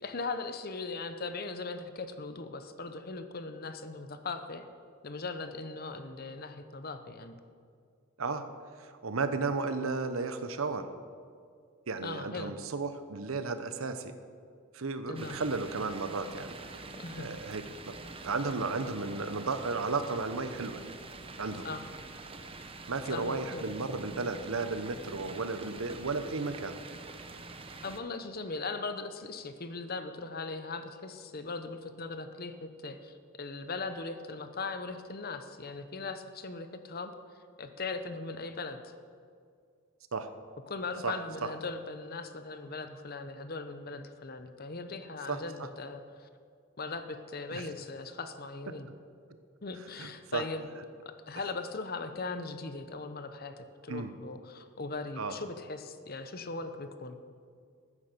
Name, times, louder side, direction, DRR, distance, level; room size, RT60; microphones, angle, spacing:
voice 1, 0.0-4.6 5.0-7.4 12.0-12.6 15.1-15.4 17.0-17.4 21.6-21.9 23.1-23.7 27.8-37.1 37.6-38.9 40.7-46.3 46.8-48.9 49.6-50.7 51.3-57.2, left 3 dB, 45° left, 9 dB, 0.9 m, -39 dB
voice 2, 8.8-10.9 11.9-14.1 14.7-16.9 17.1-18.0 18.2-20.8 21.4-21.7 22.9-26.8 40.1-40.3 41.0-41.5 45.3-45.7 47.5-47.6 50.0-50.4 53.9-54.1 55.2-55.4, right 3 dB, 80° right, 10 dB, 0.9 m, -34 dB
sound 1, 15.1-28.0, right 3 dB, 25° right, 0.8 m, -46 dB
14.5 x 9.8 x 6.8 m, 2.2 s
head